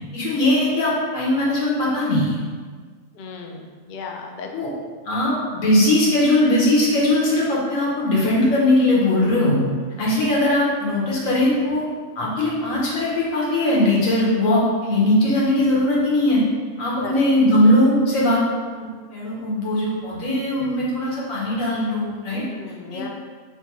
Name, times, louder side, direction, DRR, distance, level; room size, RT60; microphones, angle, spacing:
voice 1, 0.1-2.4 4.5-4.7 5.0-9.6 10.0-11.8 12.2-16.4 16.8-18.4 18.8-22.4 22.9-23.0, left 1 dB, 90° left, -5 dB, 1.5 m, -20 dB
voice 2, 3.1-4.5 17.0-17.3 22.5-23.1, left 5 dB, 65° left, 2 dB, 0.4 m, -35 dB
3.4 x 2.7 x 4.5 m, 1.5 s
omnidirectional pair, 1.3 m